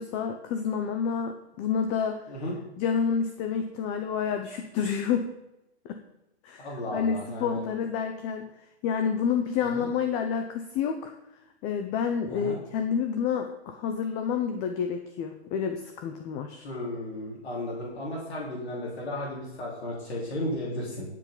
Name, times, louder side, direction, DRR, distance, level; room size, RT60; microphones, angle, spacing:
voice 1, 0.0-2.2 2.8-5.3 5.8-6.0 6.4-6.7 6.9-8.5 8.8-11.1 11.6-16.7, left 7 dB, 20° left, 6 dB, 0.7 m, -29 dB
voice 2, 6.6-7.6 9.6-9.9 12.3-12.6 16.6-21.0, left 1 dB, 70° left, -5 dB, 4.5 m, -34 dB
21.5 x 7.6 x 3.9 m, 0.92 s
hypercardioid pair, 145°, 33 cm